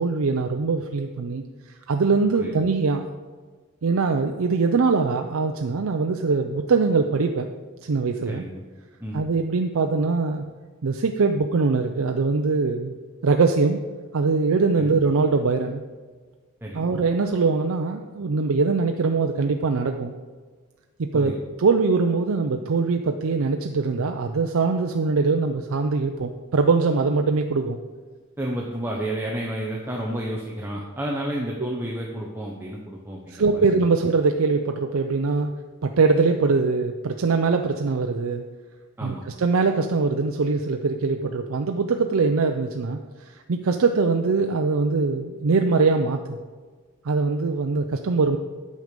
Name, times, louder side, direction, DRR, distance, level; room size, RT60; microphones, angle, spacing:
voice 1, 0.0-3.1 3.8-7.5 7.8-8.4 9.1-10.4 10.8-12.9 13.2-13.8 14.1-15.8 16.7-20.1 21.0-27.8 31.6-31.7 33.3-35.5 35.8-38.4 39.0-46.4 47.0-48.4, right 4 dB, 80° right, 5 dB, 0.5 m, -22 dB
voice 2, 8.2-8.6 9.0-9.2 14.8-14.9 16.6-17.0 21.1-21.3 28.4-33.6 39.0-39.2, right 1 dB, 10° right, -2 dB, 0.8 m, -31 dB
9.5 x 6.5 x 5.2 m, 1.4 s
head